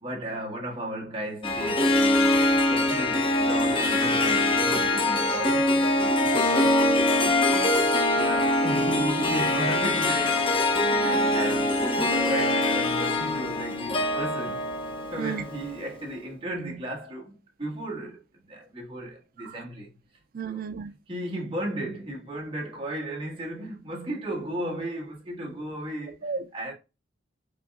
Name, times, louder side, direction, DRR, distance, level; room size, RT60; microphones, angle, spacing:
voice 1, 0.0-6.9 8.1-14.6 15.1-19.9 20.4-20.6 21.1-26.7, right 1 dB, 30° right, 1.6 m, -35 dB
Harp, 1.4-15.9, left 2 dB, 30° left, 0.6 m, -23 dB
voice 2, 7.2-7.8 15.2-15.4 19.4-19.6 20.3-20.9 26.2-26.5, right 5 dB, 50° right, 0.4 m, -34 dB
5.2 x 3.0 x 2.3 m
head